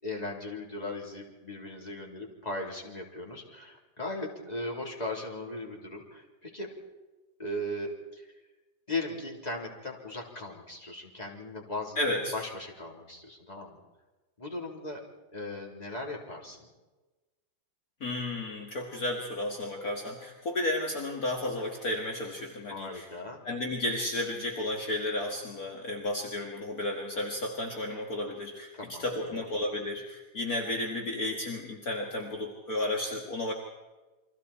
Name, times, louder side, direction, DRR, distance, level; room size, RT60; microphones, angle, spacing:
voice 1, 0.0-6.7 7.4-8.3 8.9-12.0 12.3-13.8 14.4-15.0 15.3-16.7 22.7-23.4 28.7-29.4, left 2 dB, 20° left, -1 dB, 3.9 m, -38 dB
voice 2, 12.0-12.3 18.0-23.1 23.4-28.7 29.0-33.5, left 1 dB, 50° left, 1 dB, 2.4 m, -33 dB
30.0 x 23.5 x 4.4 m, 1.2 s
omnidirectional pair, 2.1 m